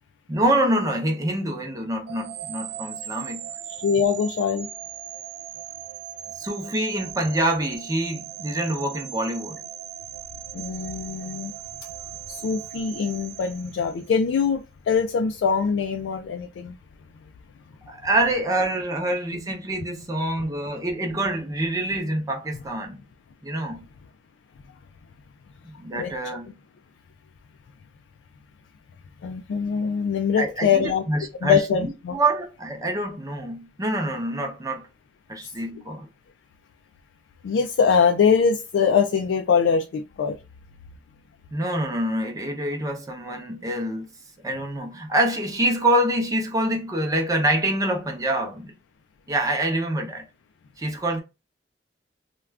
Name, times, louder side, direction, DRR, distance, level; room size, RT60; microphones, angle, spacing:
voice 1, 0.3-3.5 6.4-9.6 17.9-23.0 23.4-23.9 25.6-26.5 30.4-34.9 35.3-36.1 41.5-44.1 44.4-48.7 49.3-50.2 50.8-51.2, right 1 dB, 20° right, 0.6 m, -26 dB
sound 1, 2.1-14.2, right 12 dB, 65° right, 0.3 m, -39 dB
voice 2, 3.8-4.7 10.5-11.5 12.3-16.8 25.9-26.1 29.2-31.0 31.4-32.2 35.4-35.5 37.4-40.4, left 6 dB, 90° left, 0.3 m, -23 dB
2.3 x 2.2 x 3.3 m
head